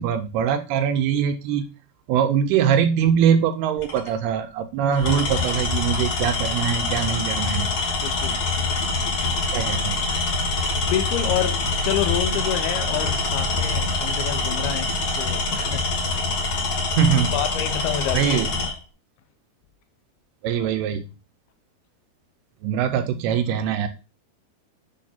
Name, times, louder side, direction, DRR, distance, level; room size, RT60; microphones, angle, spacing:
voice 1, 0.0-1.7 2.1-7.7 9.5-10.0 17.0-17.4 18.1-18.5 20.4-21.1 22.6-23.9, right 8 dB, 80° right, 2.6 m, -22 dB
Tools, 3.8-4.1 4.9-18.7, left 3 dB, 45° left, 2.4 m, -25 dB
voice 2, 8.0-8.4 10.9-15.9 16.4-16.5 17.3-18.4, left 10 dB, 80° left, 2.6 m, -28 dB
8.6 x 3.5 x 4.2 m
omnidirectional pair, 4.7 m